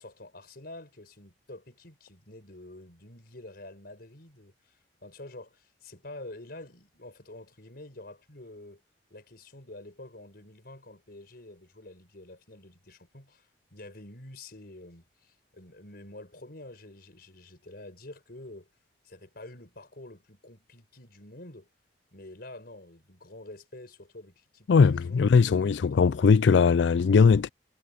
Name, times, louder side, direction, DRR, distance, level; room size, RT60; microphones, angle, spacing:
voice 1, 0.0-8.8 9.1-18.7 19.0-21.7 22.1-25.3 25.8-27.4, left 2 dB, 60° left, 5.4 m, -48 dB
voice 2, 24.7-27.5, left 5 dB, 80° left, 0.4 m, -20 dB
head